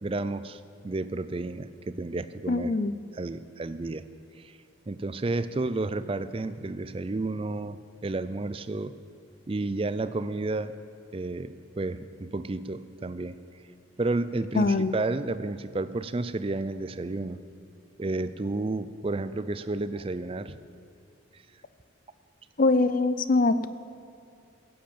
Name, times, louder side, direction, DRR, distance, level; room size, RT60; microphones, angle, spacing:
voice 1, 0.0-2.7 3.1-4.1 4.4-4.6 4.9-8.9 9.5-10.7 11.1-13.4 14.0-17.4 18.0-20.6 21.3-21.4, right 2 dB, 25° right, 14 dB, 0.4 m, -31 dB
voice 2, 2.5-2.9 14.6-15.0 22.6-23.7, left 3 dB, 40° left, 13 dB, 0.5 m, -23 dB
16.0 x 7.9 x 8.6 m, 2.5 s
head